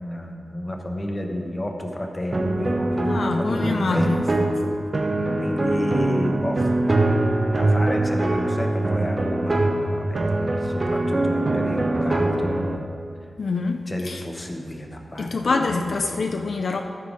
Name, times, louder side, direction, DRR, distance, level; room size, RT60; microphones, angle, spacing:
voice 1, 0.0-4.8 5.4-12.9 13.9-16.3, left 1 dB, 20° left, 2 dB, 1.0 m, -31 dB
sound 1, 2.3-12.8, right 2 dB, 30° right, 0.6 m, -23 dB
voice 2, 3.0-4.3 13.4-14.2 15.2-16.8, left 3 dB, 60° left, 5 dB, 0.4 m, -25 dB
13.5 x 5.7 x 5.1 m, 2.5 s
wide cardioid pair, 145°, 0 cm